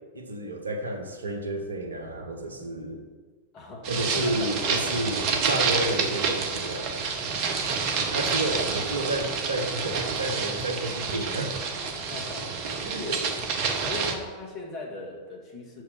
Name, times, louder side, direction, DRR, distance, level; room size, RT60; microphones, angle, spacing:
voice 1, 0.1-3.0 3.9-7.1 8.1-11.6 12.8-13.3, right 1 dB, 75° right, 5 dB, 0.9 m, -31 dB
voice 2, 3.5-5.0 12.0-13.2 13.8-15.8, left 2 dB, 35° left, -1 dB, 1.9 m, -39 dB
sound 1, 3.8-14.1, right 5 dB, 45° right, 1.0 m, -28 dB
6.7 x 4.6 x 6.7 m, 1.5 s
figure-of-eight pair, 90°, 0 cm